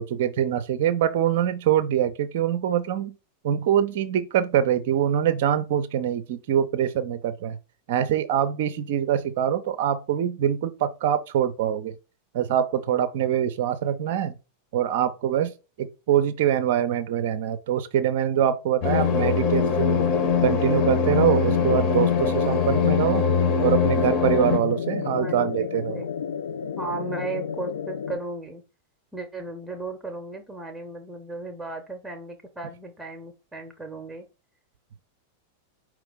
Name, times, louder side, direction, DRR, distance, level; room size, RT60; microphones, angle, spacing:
voice 1, 0.0-3.1 3.4-7.6 7.9-11.9 12.3-14.3 14.7-15.5 15.8-20.0 20.4-23.2 23.6-26.0, right 10 dB, 50° right, 0.4 m, -24 dB
sound 1, 18.8-24.6, left 6 dB, 40° left, 0.9 m, -22 dB
sound 2, 19.9-28.2, left 7 dB, 65° left, 0.3 m, -31 dB
voice 2, 25.0-26.1 26.8-28.6 29.1-34.3, right 3 dB, 10° right, 0.7 m, -36 dB
4.9 x 3.0 x 3.5 m
figure-of-eight pair, 90°, 0 cm